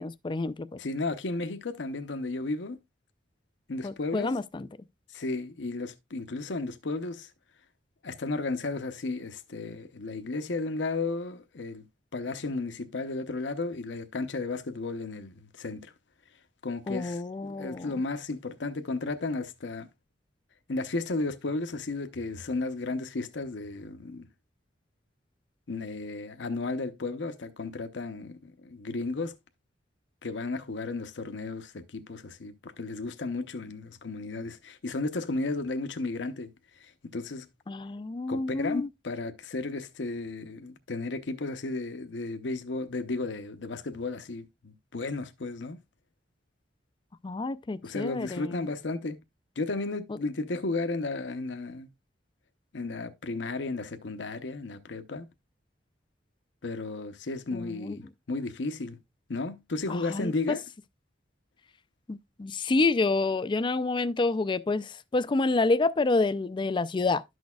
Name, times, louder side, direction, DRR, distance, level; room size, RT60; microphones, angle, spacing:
voice 1, 0.0-0.8 3.8-4.7 16.9-18.0 37.7-38.9 47.2-48.7 57.5-58.0 59.9-60.6 62.1-67.2, left 3 dB, 25° left, 0.4 m, -28 dB
voice 2, 0.8-2.8 3.7-4.3 5.1-7.3 8.0-11.8 12.1-15.9 16.6-19.9 20.7-24.3 25.7-29.4 30.2-37.5 38.3-45.8 47.8-49.2 49.6-51.9 52.7-55.3 56.6-59.0 59.3-60.6, left 3 dB, 70° left, 0.7 m, -34 dB
11.5 x 6.3 x 2.3 m
head